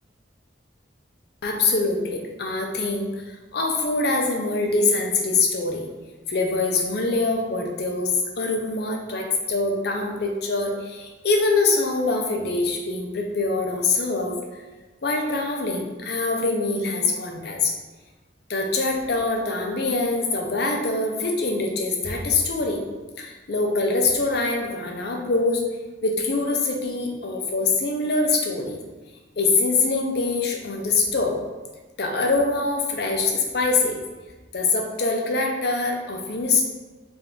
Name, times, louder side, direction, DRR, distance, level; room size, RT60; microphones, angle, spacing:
voice 1, 1.4-3.1 3.5-5.9 6.3-14.6 15.0-17.7 18.5-22.8 23.2-25.6 26.0-28.8 29.4-31.4 32.0-34.0 34.5-36.6, left 3 dB, 55° left, 1 dB, 0.6 m, -24 dB
3.3 x 2.6 x 3.7 m, 1.2 s
head